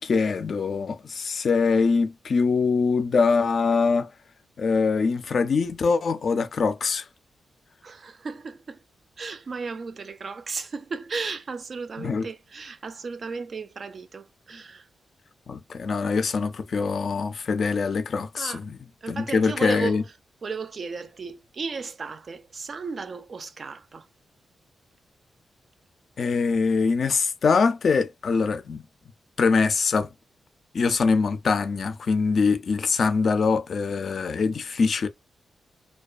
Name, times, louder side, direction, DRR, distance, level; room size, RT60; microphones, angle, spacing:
voice 1, 0.0-4.1 4.6-7.1 12.0-12.3 15.5-18.7 19.1-20.0 26.2-28.8 29.4-30.1 30.7-35.1, left 4 dB, 55° left, 0.3 m, -23 dB
voice 2, 7.8-8.8 9.2-14.9 18.4-18.6 19.0-20.0 20.4-24.1, right 4 dB, 50° right, 0.4 m, -35 dB
2.4 x 2.2 x 2.3 m
cardioid pair, 90°, 0 cm